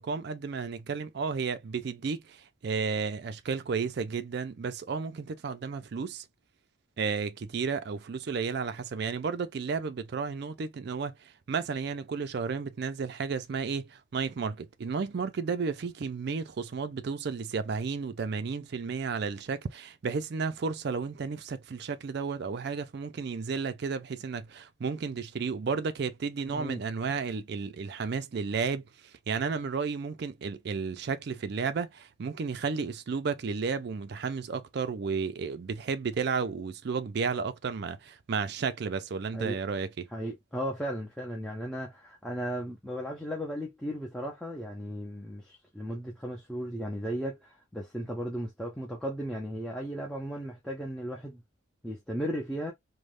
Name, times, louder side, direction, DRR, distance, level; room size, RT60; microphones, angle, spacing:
voice 1, 0.0-6.2 7.0-40.1, right 5 dB, 55° right, 0.4 m, -33 dB
voice 2, 26.5-26.8 39.3-39.6 40.1-51.4 51.8-52.7, equal, 5° left, 0.5 m, -36 dB
3.3 x 2.1 x 2.5 m
head